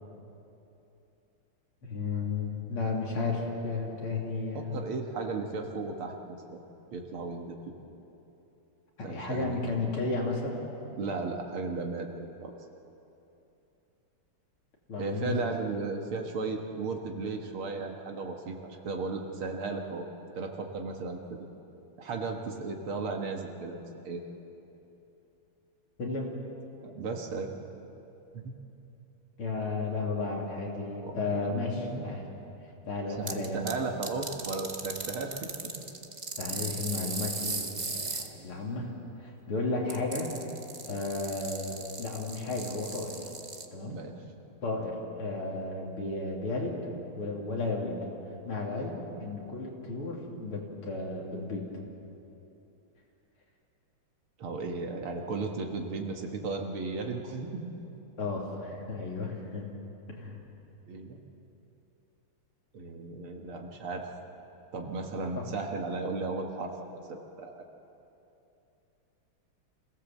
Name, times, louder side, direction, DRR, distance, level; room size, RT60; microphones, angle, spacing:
voice 1, 1.8-4.8 9.0-10.7 14.9-15.5 26.0-26.3 29.4-32.2 32.9-33.7 36.4-38.9 39.2-40.3 40.9-43.1 43.7-44.0 44.6-46.8 47.2-48.0 48.4-51.7 58.2-59.7 60.1-60.4 65.1-65.5, left 3 dB, 80° left, -2 dB, 3.8 m, -33 dB
voice 2, 4.5-6.6 6.9-7.6 9.0-9.8 11.0-12.5 15.0-20.1 20.4-21.5 22.0-24.2 26.8-27.5 28.3-28.5 31.0-32.0 33.0-35.8 36.5-36.7 38.4-38.8 43.9-44.2 54.4-57.7 60.9-61.2 62.7-64.1 64.7-67.5, right 3 dB, 75° right, 2 dB, 2.4 m, -35 dB
sound 1, 33.3-33.7 34.0-38.3 39.9-43.6, right 3 dB, 30° right, 0.9 m, -37 dB
26.5 x 17.0 x 7.4 m, 2.9 s
omnidirectional pair, 2.4 m